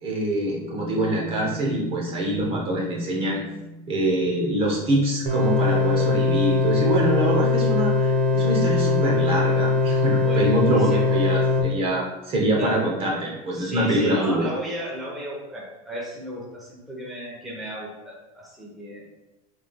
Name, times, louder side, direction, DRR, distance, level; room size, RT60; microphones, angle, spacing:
voice 1, 0.0-3.4 3.9-14.4, right 1 dB, 30° right, -2 dB, 1.0 m, -24 dB
sound 1, 0.6-7.3, right 1 dB, 60° left, 0.9 m, -40 dB
sound 2, 5.3-11.6, left 3 dB, 60° right, 0.9 m, -21 dB
voice 2, 10.1-11.2 12.6-12.7 13.5-19.2, equal, ahead, -5 dB, 0.9 m, -35 dB
5.6 x 3.3 x 2.3 m, 1.0 s
cardioid pair, 160°, 19 cm